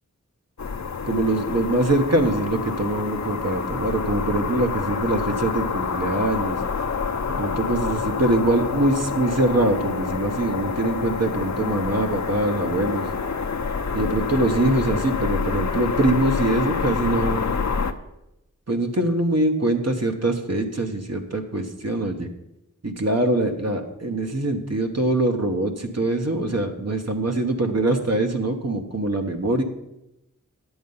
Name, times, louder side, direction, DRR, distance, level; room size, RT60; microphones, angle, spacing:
sound 1, 0.6-17.9, left 5 dB, 60° left, 0.7 m, -27 dB
voice 1, 1.0-6.6 7.4-13.1 13.9-17.4 18.7-22.3 22.8-29.6, right 2 dB, 55° right, 4 dB, 1.2 m, -23 dB
10.0 x 7.8 x 5.5 m, 0.89 s
wide cardioid pair, 50°, 32 cm